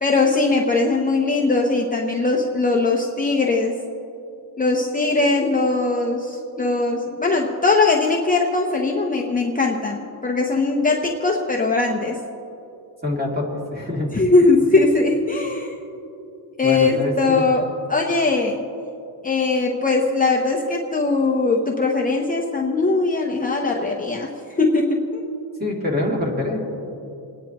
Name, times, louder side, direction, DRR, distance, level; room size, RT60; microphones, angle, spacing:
voice 1, 0.0-3.8 4.6-12.2 14.1-15.8 16.6-18.7 19.2-24.3 24.6-25.2, left 3 dB, 20° left, 0 dB, 0.8 m, -20 dB
voice 2, 13.0-14.1 16.6-17.4 25.6-26.6, left 2 dB, 20° right, -3 dB, 2.8 m, -25 dB
29.5 x 10.0 x 3.0 m, 2.7 s
cardioid pair, 145°, 43 cm